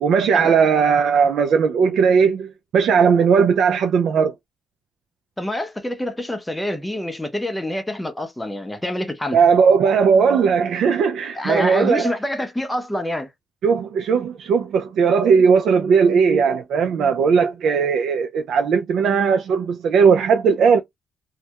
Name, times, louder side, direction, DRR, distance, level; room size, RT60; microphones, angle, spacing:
voice 1, 0.0-4.3 9.3-12.1 13.6-20.8, right 6 dB, 70° right, 0.3 m, -17 dB
voice 2, 5.4-9.4 11.3-13.3, left 1 dB, 10° left, 0.6 m, -26 dB
2.2 x 2.0 x 2.8 m
cardioid pair, 90°, 0 cm